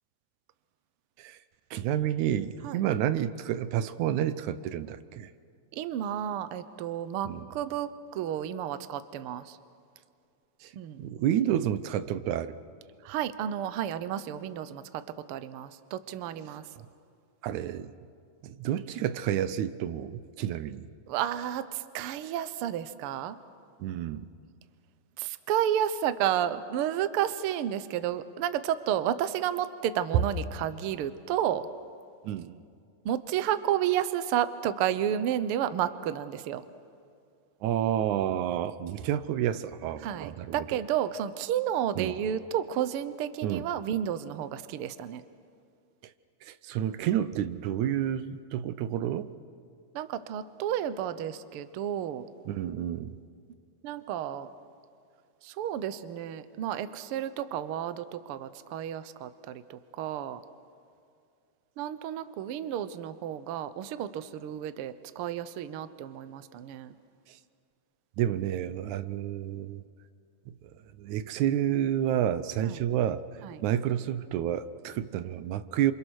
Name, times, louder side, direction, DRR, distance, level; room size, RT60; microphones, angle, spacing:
voice 1, 1.7-5.3 7.3-7.5 10.6-10.7 11.0-12.5 17.4-17.9 18.4-20.9 23.8-24.3 30.1-30.2 32.2-32.6 37.6-40.6 42.0-42.1 43.4-43.7 46.5-49.3 52.5-53.1 68.2-69.8 70.6-70.7 71.0-73.2 73.6-75.9, right 11 dB, 90° right, 13 dB, 2.3 m, -29 dB
voice 2, 5.7-9.6 10.7-11.0 13.0-15.0 15.3-16.7 21.1-23.4 25.2-31.7 33.0-36.6 40.0-45.2 49.9-52.2 53.8-54.5 55.4-60.4 61.8-66.9 72.6-72.8 73.4-73.6, right 10 dB, 65° right, 12 dB, 1.5 m, -31 dB
28.5 x 27.5 x 6.4 m, 2.3 s
omnidirectional pair, 3.3 m